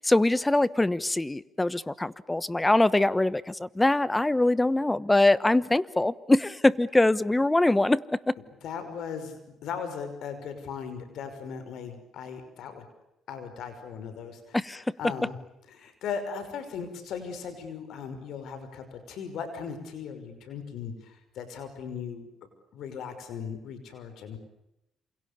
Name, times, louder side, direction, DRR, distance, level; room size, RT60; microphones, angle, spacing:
voice 1, 0.0-8.3 14.5-14.8, left 2 dB, 15° left, 18 dB, 1.1 m, -23 dB
voice 2, 8.6-12.9 13.3-15.4 15.7-22.3 22.7-24.4, left 6 dB, 80° left, 10 dB, 5.6 m, -38 dB
28.0 x 28.0 x 7.0 m, 0.86 s
cardioid pair, 90°, 0 cm